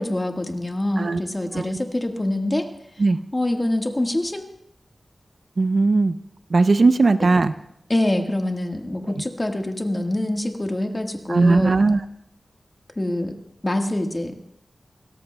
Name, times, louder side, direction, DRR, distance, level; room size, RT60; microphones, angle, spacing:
voice 1, 0.0-2.7 3.3-4.5 7.9-11.8 13.0-13.4 13.6-14.3, left 1 dB, 25° left, 3 dB, 1.4 m, -25 dB
voice 2, 5.6-6.2 6.5-7.5 9.1-9.2 11.3-12.0, right 3 dB, 60° right, 11 dB, 0.5 m, -18 dB
28.5 x 14.0 x 2.2 m, 0.79 s
wide cardioid pair, 100°, 0 cm